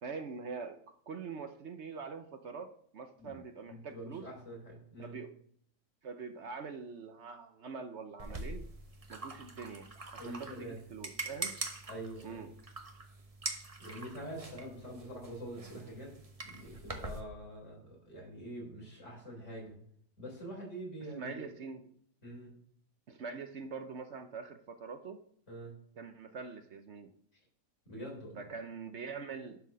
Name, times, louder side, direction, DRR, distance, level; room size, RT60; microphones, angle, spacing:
voice 1, 0.0-4.3 5.0-5.4 6.0-8.7 9.1-9.9 10.3-11.6 12.2-12.5 21.1-21.9 23.1-25.2 26.0-27.1 28.4-29.6, right 5 dB, 55° right, 8 dB, 0.8 m, -44 dB
voice 2, 3.7-5.2 10.2-10.8 11.9-12.4 13.8-16.2 16.4-19.8 20.2-21.5 22.2-22.5 25.5-25.8 27.9-28.4, equal, 45° left, -2 dB, 3.9 m, -45 dB
sound 1, 8.2-17.2, right 2 dB, 25° right, 0.9 m, -44 dB
11.5 x 4.8 x 6.1 m, 0.65 s
omnidirectional pair, 1.8 m